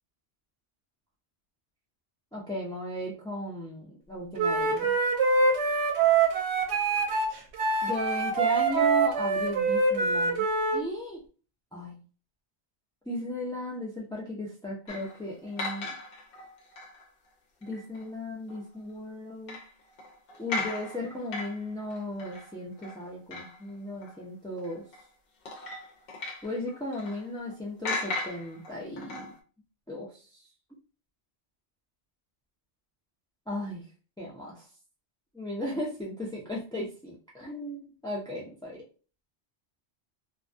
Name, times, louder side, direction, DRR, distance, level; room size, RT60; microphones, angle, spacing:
voice 1, 2.3-5.0 7.8-10.5 10.7-11.2 11.7-12.0 13.1-15.9 17.6-19.6 20.4-24.9 26.4-29.3 29.9-30.4 33.5-33.9 34.2-34.7 35.3-38.8, left 1 dB, 5° left, -5 dB, 0.3 m, -36 dB
Wind instrument woodwind instrument, 4.4-10.8, right 4 dB, 75° right, 0.9 m, -25 dB
sound 1, 14.9-17.1 17.6-18.1 18.5-18.6 19.5-23.8 24.0-24.1 24.6-25.0 25.5-27.6 27.8-29.4, left 2 dB, 60° left, 0.7 m, -38 dB
2.2 x 2.2 x 2.5 m, 0.36 s
omnidirectional pair, 1.2 m